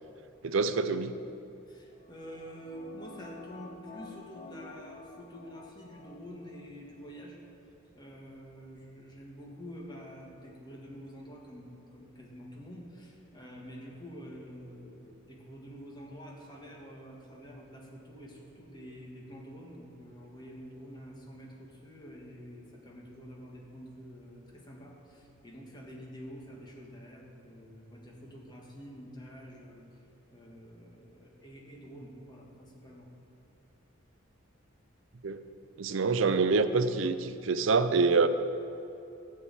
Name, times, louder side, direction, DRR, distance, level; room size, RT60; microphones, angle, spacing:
voice 1, 0.4-1.2 35.2-35.4 35.8-38.3, right 4 dB, 70° right, 11 dB, 0.5 m, -26 dB
voice 2, 1.7-7.4 7.9-29.8 30.3-33.1, equal, 20° left, -2 dB, 1.6 m, -48 dB
sound 1, 1.9-6.7 7.0-7.1, left 2 dB, 40° left, 0.7 m, -49 dB
12.5 x 4.8 x 8.5 m, 2.7 s
head